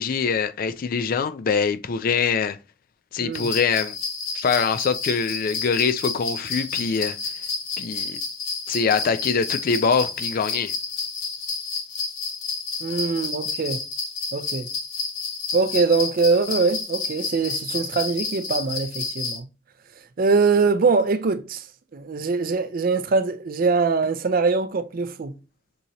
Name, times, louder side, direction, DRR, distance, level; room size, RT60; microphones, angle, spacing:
voice 1, 0.0-2.6 3.1-4.0 4.3-7.2 7.8-8.2 8.7-10.7, left 5 dB, 45° left, 0.3 m, -23 dB
sound 1, 3.3-19.4, left 4 dB, 75° left, 1.1 m, -30 dB
voice 2, 12.8-13.8 14.3-14.7 15.5-19.5 20.2-21.7 21.9-25.3, right 4 dB, 45° right, 0.4 m, -22 dB
6.2 x 2.9 x 2.7 m
head